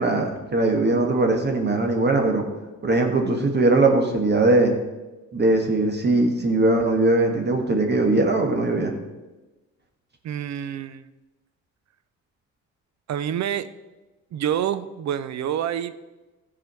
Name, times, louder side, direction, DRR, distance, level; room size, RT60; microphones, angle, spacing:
voice 1, 0.0-2.4 2.8-4.7 5.3-9.0, right 2 dB, 35° right, 3 dB, 1.5 m, -20 dB
voice 2, 10.2-11.1 13.1-13.7 14.3-15.9, right 10 dB, 65° right, 14 dB, 0.7 m, -27 dB
13.0 x 4.9 x 6.2 m, 1.1 s
cardioid pair, 90°, 30 cm